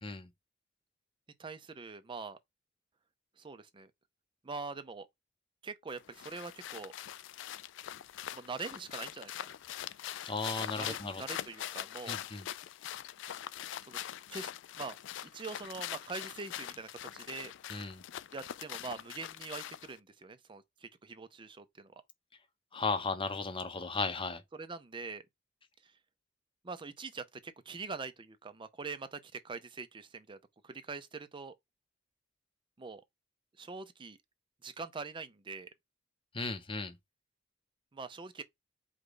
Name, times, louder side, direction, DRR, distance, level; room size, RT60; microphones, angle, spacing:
voice 1, 1.4-2.4 3.4-3.9 4.4-5.1 5.6-6.9 8.3-9.5 10.7-12.2 13.8-14.0 14.3-14.5 14.8-15.0 15.2-17.5 18.3-21.9 24.5-25.2 25.8-25.9 26.6-30.4 30.6-31.5 32.8-33.0 33.6-34.2 34.6-35.7 37.9-38.4, right 4 dB, 25° right, 0.5 m, -43 dB
sound 1, 5.9-20.0, left 11 dB, 70° left, 0.3 m, -43 dB
voice 2, 10.2-11.2 12.1-12.5 17.7-18.0 22.7-24.4 36.3-37.0, left 3 dB, 30° left, 0.8 m, -35 dB
5.0 x 2.3 x 3.8 m
head